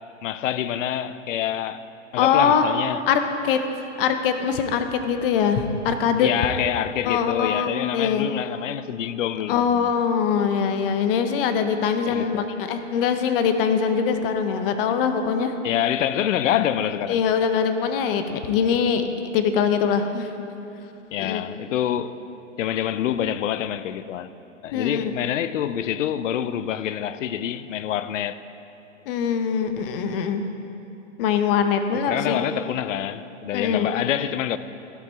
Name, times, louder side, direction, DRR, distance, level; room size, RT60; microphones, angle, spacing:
voice 1, 0.2-1.8 2.1-3.0 6.2-9.9 12.0-12.4 15.6-17.2 21.1-22.2 22.6-24.3 24.6-28.4 31.9-34.6, left 10 dB, 75° left, 0.5 m, -26 dB
voice 2, 2.2-2.6 3.1-3.6 4.0-6.3 7.0-8.3 9.5-15.5 17.1-19.1 19.3-20.3 21.2-21.4 24.7-25.0 29.1-30.4 31.2-32.4 33.5-33.9, left 7 dB, 45° left, 0.8 m, -22 dB
13.0 x 6.0 x 4.4 m
hypercardioid pair, 130°, 38 cm